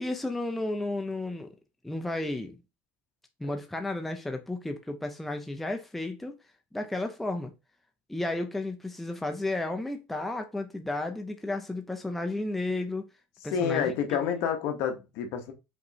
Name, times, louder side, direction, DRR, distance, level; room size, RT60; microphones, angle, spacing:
voice 1, 0.0-1.5 1.8-2.6 3.4-6.4 6.7-7.5 8.1-13.1 13.4-13.9 14.3-14.5, left 2 dB, 5° left, 0.4 m, -33 dB
voice 2, 13.5-15.5, left 7 dB, 60° left, 1.0 m, -29 dB
5.1 x 3.0 x 2.7 m
cardioid pair, 150°, 4 cm